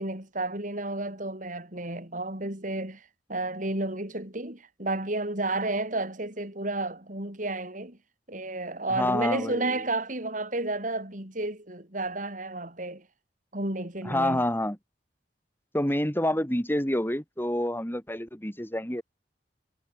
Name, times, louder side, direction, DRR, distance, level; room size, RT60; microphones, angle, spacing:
voice 1, 0.0-8.0 8.3-13.1 13.5-14.4, right 2 dB, 50° right, 6.2 m, -32 dB
voice 2, 8.9-9.8 14.0-14.8 15.7-19.0, left 1 dB, 15° left, 6.2 m, -28 dB
head